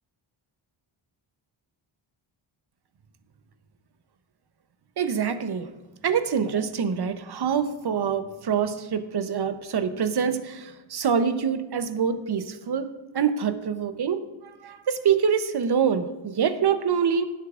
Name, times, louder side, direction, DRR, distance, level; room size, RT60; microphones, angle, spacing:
voice 1, 5.0-5.7 6.0-12.9 13.1-14.2 14.6-17.3, right 7 dB, 50° right, 10 dB, 0.8 m, -25 dB
16.0 x 8.2 x 2.5 m, 1.1 s
wide cardioid pair, 125°, 49 cm